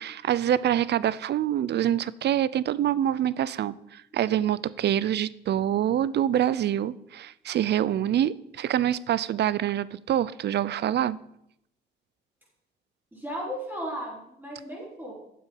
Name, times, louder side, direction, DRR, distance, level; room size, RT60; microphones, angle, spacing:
voice 1, 0.0-11.2, right 11 dB, 60° right, 0.5 m, -26 dB
voice 2, 13.1-15.1, equal, 10° right, 4.9 m, -35 dB
9.3 x 7.4 x 5.7 m
cardioid pair, 90°, 20 cm